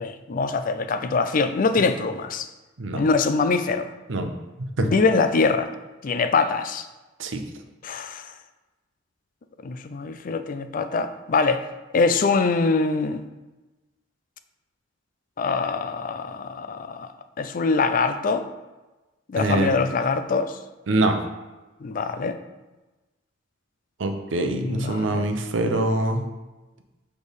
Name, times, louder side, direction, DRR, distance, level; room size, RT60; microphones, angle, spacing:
voice 1, 0.0-2.5 2.9-3.9 4.8-5.7 6.0-6.9 7.8-8.3 9.6-11.6 11.9-13.2 15.4-17.1 17.4-18.5 19.3-20.6 21.8-22.4 24.5-25.3, left 4 dB, 45° left, 9 dB, 0.4 m, -23 dB
voice 2, 4.6-4.9 7.2-7.4 19.4-19.7 20.9-21.2 24.0-26.2, right 2 dB, 80° right, 5 dB, 0.7 m, -24 dB
6.3 x 3.4 x 5.2 m, 1.1 s
head